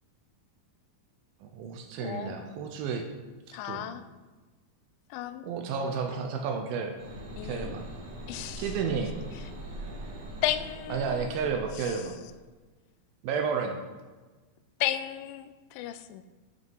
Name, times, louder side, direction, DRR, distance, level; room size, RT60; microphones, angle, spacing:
voice 1, 1.4-3.1 3.5-3.8 5.4-7.0 7.4-7.9 8.6-9.1 10.9-12.1 13.2-13.8, right 6 dB, 80° right, 4 dB, 2.5 m, -31 dB
voice 2, 2.0-2.4 3.5-4.0 5.1-5.5 7.4-7.7 8.3-8.7 10.4-12.0 14.8-16.2, left 12 dB, 80° left, 11 dB, 2.0 m, -34 dB
sound 1, 7.0-12.3, right 1 dB, 50° right, 2.0 m, -42 dB
11.0 x 5.4 x 4.6 m, 1.3 s
omnidirectional pair, 4.3 m